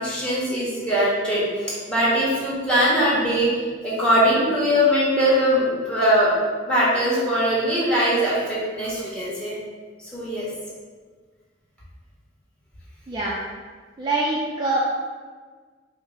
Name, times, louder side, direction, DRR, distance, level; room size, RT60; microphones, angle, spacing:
voice 1, 0.0-3.5 3.8-6.4 6.7-9.6 10.0-10.5, equal, 5° left, -8 dB, 1.1 m, -21 dB
voice 2, 13.1-13.4 14.0-14.8, right 2 dB, 25° right, -5 dB, 0.4 m, -24 dB
4.5 x 2.1 x 3.7 m, 1.5 s
head